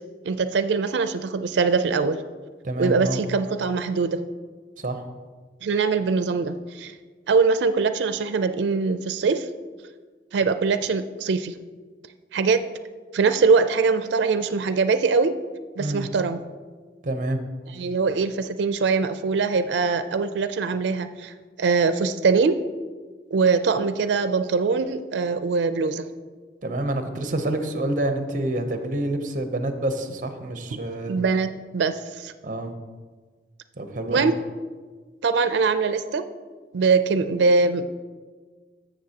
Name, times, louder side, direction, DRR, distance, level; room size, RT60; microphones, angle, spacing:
voice 1, 0.2-2.2 2.8-4.2 5.6-6.9 7.3-9.5 10.3-11.6 12.3-12.6 13.1-15.4 15.8-16.4 17.7-22.6 23.3-26.1 30.7-30.8 31.1-32.3 34.1-34.4 35.2-36.2 36.7-38.0, right 4 dB, 90° right, 11 dB, 0.4 m, -22 dB
voice 2, 2.6-3.2 4.8-5.0 15.8-16.1 17.0-17.4 26.6-31.2 32.4-32.7 33.8-34.3, right 1 dB, 50° right, 7 dB, 0.8 m, -27 dB
14.0 x 6.4 x 2.9 m, 1.5 s
head